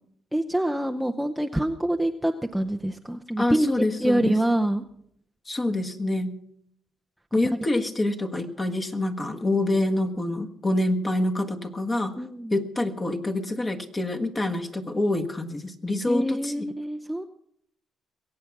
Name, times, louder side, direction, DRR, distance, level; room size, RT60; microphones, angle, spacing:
voice 1, 0.3-4.8 12.2-12.5 16.1-17.2, right 1 dB, 5° right, 4 dB, 0.7 m, -26 dB
voice 2, 3.4-4.3 5.5-6.4 7.3-12.2 12.5-16.7, left 1 dB, 25° left, 5 dB, 1.5 m, -26 dB
22.0 x 8.5 x 5.9 m, 0.69 s
cardioid pair, 90°, 0 cm